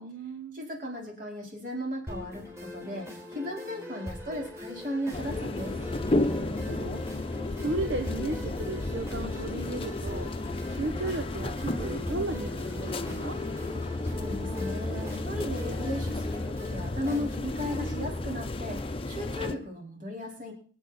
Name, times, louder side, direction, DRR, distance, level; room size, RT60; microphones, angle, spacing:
voice 1, 0.0-0.6 6.0-7.1 7.6-10.3 10.7-13.4, right 2 dB, 75° right, 6 dB, 1.1 m, -35 dB
voice 2, 0.5-5.8 14.0-20.5, left 1 dB, 45° right, 1 dB, 4.8 m, -36 dB
sound 1, 2.1-18.1, left 2 dB, 15° right, 5.0 m, -42 dB
sound 2, 5.1-19.5, left 2 dB, 30° left, 0.8 m, -33 dB
25.0 x 8.6 x 4.3 m, 0.42 s
head